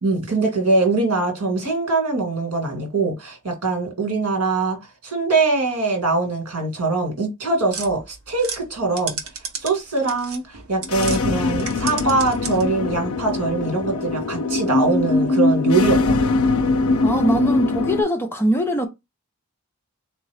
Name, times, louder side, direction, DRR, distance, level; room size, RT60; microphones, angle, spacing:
voice 1, 0.0-4.8 5.0-9.2 9.6-16.3, right 3 dB, 85° right, 1.7 m, -22 dB
sound 1, 7.7-11.2 11.5-12.8, right 6 dB, 65° right, 0.9 m, -33 dB
sound 2, 10.8-18.0, left 3 dB, 65° left, 0.4 m, -22 dB
voice 2, 17.0-18.9, equal, 10° left, 0.5 m, -21 dB
3.6 x 2.7 x 3.3 m
head